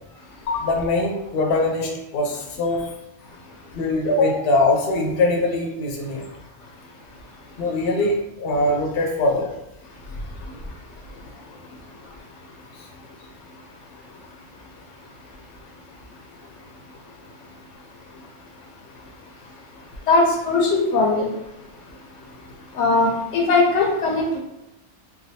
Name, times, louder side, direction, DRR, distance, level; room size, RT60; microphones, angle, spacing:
voice 1, 0.5-2.9 3.7-6.2 7.6-9.5, left 2 dB, 60° left, 0 dB, 0.7 m, -22 dB
voice 2, 20.1-21.3 22.8-23.1 23.3-24.4, left 3 dB, 90° left, 0 dB, 1.0 m, -19 dB
3.2 x 2.2 x 2.7 m, 0.88 s
omnidirectional pair, 1.2 m